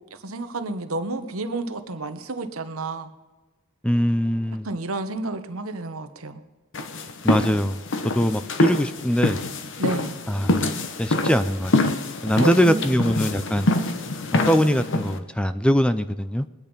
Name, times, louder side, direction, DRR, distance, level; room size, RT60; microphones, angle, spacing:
voice 1, 0.1-3.1 4.6-6.4 9.8-10.1 12.4-12.8, right 2 dB, 70° right, 9 dB, 1.1 m, -30 dB
voice 2, 3.8-4.7 7.2-9.4 10.3-10.7 11.0-11.7 12.2-13.7 14.3-16.5, equal, 5° left, 11 dB, 0.4 m, -22 dB
sound 1, 6.7-15.2, left 2 dB, 60° left, 1.1 m, -25 dB
21.5 x 8.9 x 5.2 m, 1.2 s
head